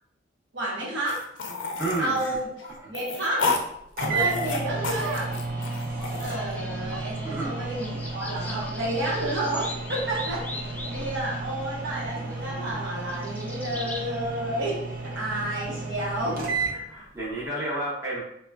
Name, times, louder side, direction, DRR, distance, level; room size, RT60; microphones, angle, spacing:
voice 1, 0.5-1.2 2.0-3.4 4.1-5.3 6.2-14.8 15.1-16.5, right 1 dB, 80° right, -5 dB, 1.0 m, -30 dB
sound 1, 1.1-3.6 4.0-6.4, left 4 dB, 75° left, 0.4 m, -31 dB
voice 2, 1.8-2.3 7.2-7.6 16.7-18.2, right 2 dB, 15° right, -7 dB, 0.7 m, -31 dB
sound 2, 3.6-3.7 4.0-16.8, right 3 dB, 50° right, 0.6 m, -33 dB
sound 3, 4.4-14.0, left 1 dB, 10° left, 0.3 m, -40 dB
3.5 x 2.3 x 2.3 m, 0.75 s
head